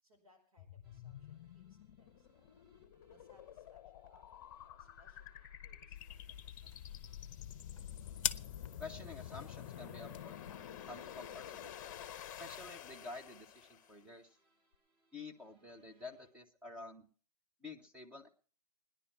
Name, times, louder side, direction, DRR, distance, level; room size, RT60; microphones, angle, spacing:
voice 1, 0.0-2.4 3.1-7.2, equal, 65° right, 3 dB, 5.0 m, -71 dB
sound 1, 0.6-14.0, left 10 dB, 30° left, 0.8 m, -50 dB
sound 2, 0.8-16.3, right 1 dB, 30° right, 3.3 m, -77 dB
sound 3, 6.0-12.8, left 9 dB, 55° left, 0.6 m, -46 dB
voice 2, 8.8-10.4 10.9-11.7 12.4-14.4 15.1-17.1 17.6-18.3, left 3 dB, 5° right, 4 dB, 0.8 m, -50 dB
18.5 x 10.5 x 5.8 m, 0.43 s
hypercardioid pair, 150°, 20 cm